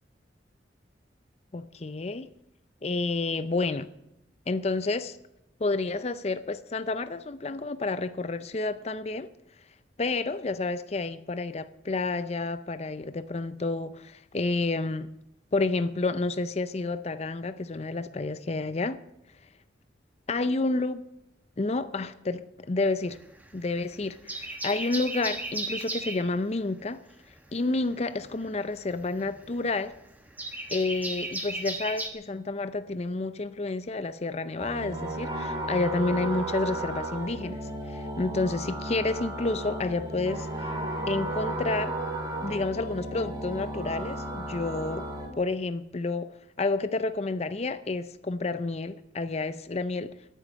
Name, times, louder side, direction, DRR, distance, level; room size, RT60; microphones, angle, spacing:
voice 1, 1.5-2.3 2.8-3.9 4.5-5.2 5.6-9.3 10.0-15.1 15.5-19.0 20.3-21.0 21.6-23.2 23.5-27.0 27.5-29.9 30.7-40.5 41.1-42.0 42.4-45.1 45.4-50.1, left 3 dB, 35° left, 0.5 m, -30 dB
sound 1, 23.1-23.8 24.1-26.3 27.9-32.1, right 2 dB, 10° right, 1.2 m, -35 dB
sound 2, 34.6-45.3, right 1 dB, 25° right, 3.5 m, -34 dB
11.0 x 9.2 x 9.8 m
head